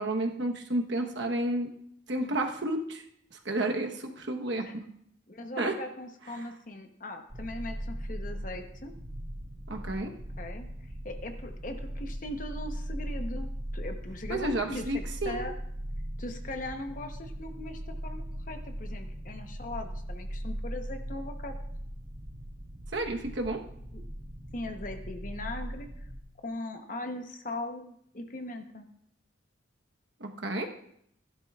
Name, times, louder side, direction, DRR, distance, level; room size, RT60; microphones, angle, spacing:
voice 1, 0.0-1.7 2.1-3.0 3.4-4.8 5.6-5.7 6.3-6.4 9.7-10.1 14.3-15.5 22.9-23.6 30.2-30.7, right 1 dB, 65° right, 3 dB, 1.1 m, -31 dB
voice 2, 5.3-8.9 10.4-10.7 11.0-15.5 16.2-21.5 23.9-24.0 24.5-26.1 26.4-28.9, left 2 dB, 40° left, 6 dB, 0.9 m, -39 dB
sound 1, 7.3-26.2, equal, 40° right, 1.2 m, -39 dB
15.5 x 11.5 x 2.4 m, 0.71 s
head